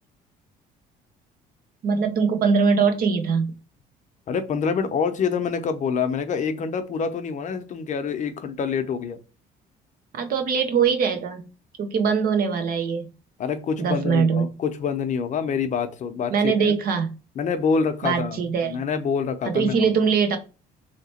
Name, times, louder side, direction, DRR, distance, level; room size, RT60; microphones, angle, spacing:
voice 1, 1.8-3.6 10.1-11.5 11.8-13.1 13.8-14.5 16.3-17.1 18.0-18.8 19.4-20.4, right 6 dB, 60° right, 0.9 m, -22 dB
voice 2, 4.3-9.2 13.4-16.8 17.4-19.9, left 6 dB, 45° left, 0.7 m, -26 dB
3.2 x 2.9 x 4.2 m
cardioid pair, 110°, 17 cm